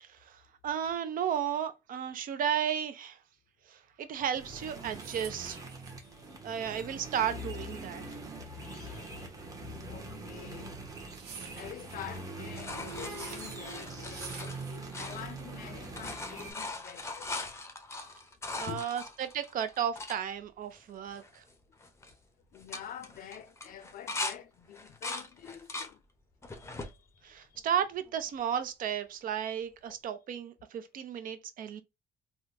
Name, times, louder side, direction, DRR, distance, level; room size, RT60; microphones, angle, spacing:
voice 1, 0.0-3.2 3.7-5.6 6.4-8.0 18.6-21.4 27.2-31.8, right 9 dB, 55° right, 0.6 m, -34 dB
sound 1, 4.3-16.5, right 2 dB, 20° right, 0.9 m, -43 dB
sound 2, 4.6-15.3, right 7 dB, 75° right, 1.0 m, -50 dB
voice 2, 5.8-6.5 8.5-9.6 9.8-10.8 11.2-17.3 18.6-19.0 22.5-26.0 26.5-27.6, left 9 dB, 55° left, 0.6 m, -47 dB
sound 3, 11.9-15.6 15.8-20.2 20.8-20.9 21.1-21.5 21.8-22.1 22.5-24.4 24.7-25.9 26.4-26.9 27.6-28.3 29.9-30.0, left 3 dB, 15° left, 0.6 m, -40 dB
3.6 x 2.2 x 2.7 m
cardioid pair, 110°, 17 cm